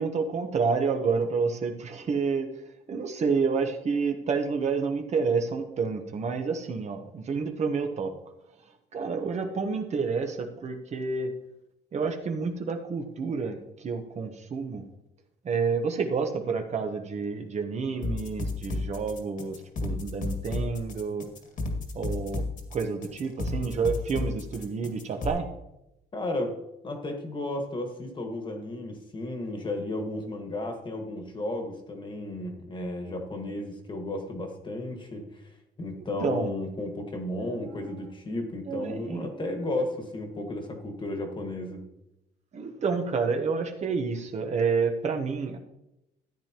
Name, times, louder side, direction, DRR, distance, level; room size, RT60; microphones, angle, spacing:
voice 1, 0.0-2.5 2.9-8.1 8.9-11.3 11.9-14.8 15.4-21.2 21.9-22.4 22.7-25.5 36.2-36.5 37.4-37.6 38.7-39.3 42.5-45.6, right 5 dB, 40° right, 4 dB, 1.1 m, -29 dB
sound 1, 18.0-25.3, left 2 dB, 50° left, 2.0 m, -32 dB
voice 2, 26.1-26.5 26.8-35.4 35.8-41.8, left 1 dB, 30° left, 4 dB, 1.7 m, -33 dB
13.5 x 8.9 x 3.0 m, 0.89 s
cardioid pair, 110°, 17 cm